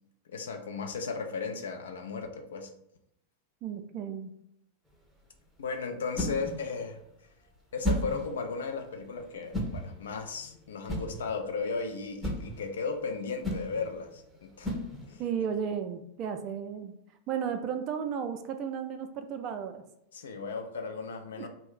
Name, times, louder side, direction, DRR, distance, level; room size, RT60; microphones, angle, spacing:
voice 1, 0.3-2.7 5.6-7.0 7.7-14.7 15.1-15.2 20.1-21.5, left 4 dB, 65° left, 4 dB, 0.4 m, -35 dB
voice 2, 3.6-4.3 15.2-16.9 17.3-19.8 21.3-21.5, right 7 dB, 35° right, 7 dB, 0.3 m, -34 dB
sound 1, 4.9-15.4, equal, 5° right, 0.6 m, -37 dB
2.3 x 2.0 x 3.7 m, 0.76 s
figure-of-eight pair, 90°, 0 cm